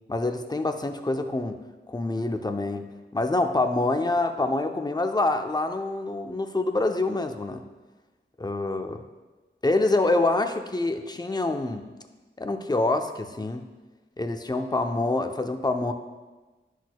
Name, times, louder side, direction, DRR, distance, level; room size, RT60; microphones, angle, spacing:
voice 1, 0.1-1.6 1.9-7.6 8.4-9.0 9.6-11.8 12.4-13.7 14.2-15.9, left 2 dB, 20° left, 6 dB, 0.6 m, -26 dB
10.0 x 6.3 x 2.3 m, 1.2 s
wide cardioid pair, 50°, 20 cm